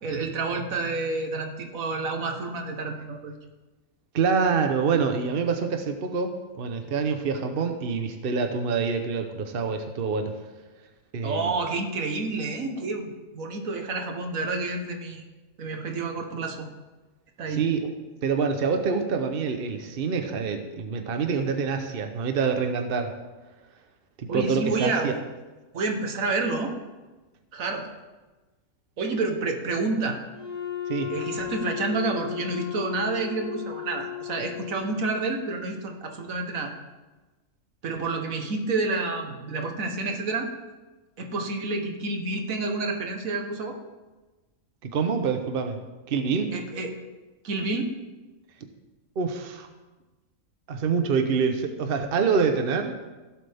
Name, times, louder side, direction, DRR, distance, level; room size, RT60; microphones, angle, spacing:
voice 1, 0.0-3.4 11.2-15.2 15.6-16.7 17.4-17.7 24.3-25.2 25.7-26.7 27.5-27.9 29.0-30.2 31.1-36.7 37.8-40.5 41.2-43.8 46.5-46.9 47.4-47.9, right 3 dB, 85° right, 3 dB, 1.7 m, -29 dB
voice 2, 4.1-6.3 6.6-10.3 11.1-11.5 17.6-17.9 18.2-23.1 24.2-25.1 30.9-31.1 44.8-45.8 46.1-46.5 49.2-49.7 50.7-52.9, right 5 dB, 50° right, 6 dB, 1.0 m, -26 dB
Wind instrument woodwind instrument, 30.3-35.0, left 10 dB, 60° left, 4.5 m, -35 dB
16.5 x 7.7 x 3.5 m, 1.2 s
omnidirectional pair, 1.4 m